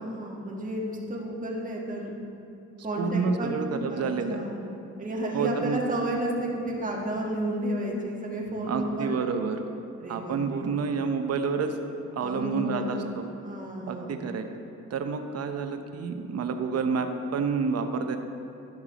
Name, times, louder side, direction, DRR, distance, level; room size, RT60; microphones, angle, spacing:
voice 1, 0.0-2.1 2.8-4.6 5.0-9.2 10.0-10.6 12.2-14.1, right 1 dB, 25° right, -2 dB, 1.7 m, -32 dB
voice 2, 3.0-4.4 5.3-5.8 8.7-9.6 10.1-11.7 12.2-13.3 13.9-14.5 14.9-18.2, right 5 dB, 55° right, 6 dB, 0.8 m, -29 dB
11.5 x 6.1 x 4.0 m, 2.6 s
cardioid pair, 90°, 30 cm